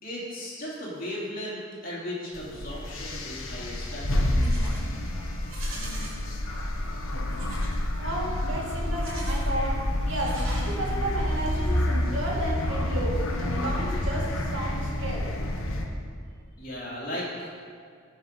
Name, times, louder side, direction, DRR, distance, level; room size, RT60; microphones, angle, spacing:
voice 1, 0.0-4.4 16.6-17.5, left 1 dB, 40° left, -5 dB, 2.9 m, -36 dB
sound 1, 2.3-15.9, left 1 dB, 75° left, 1.2 m, -28 dB
Livestock farm animals working animals, 4.1-4.9 5.4-6.2 7.3-7.8 8.9-9.5 10.1-11.1, right 2 dB, 90° right, 2.8 m, -43 dB
voice 2, 8.0-15.4, right 1 dB, 60° right, -5 dB, 2.9 m, -32 dB
17.5 x 6.0 x 5.2 m, 2.1 s
head